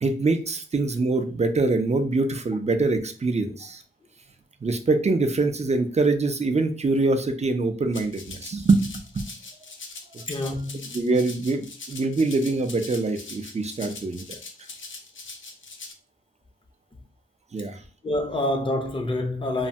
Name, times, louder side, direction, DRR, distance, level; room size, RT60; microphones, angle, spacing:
voice 1, 0.0-3.8 4.6-9.2 10.1-10.2 10.9-14.4 17.5-17.8, right 3 dB, 30° right, 0.4 m, -24 dB
Rattle (instrument), 7.9-15.9, left 3 dB, 65° left, 0.6 m, -42 dB
voice 2, 10.3-10.9 18.0-19.7, left 1 dB, 25° left, 0.6 m, -27 dB
3.1 x 2.1 x 2.6 m
wide cardioid pair, 90°, 21 cm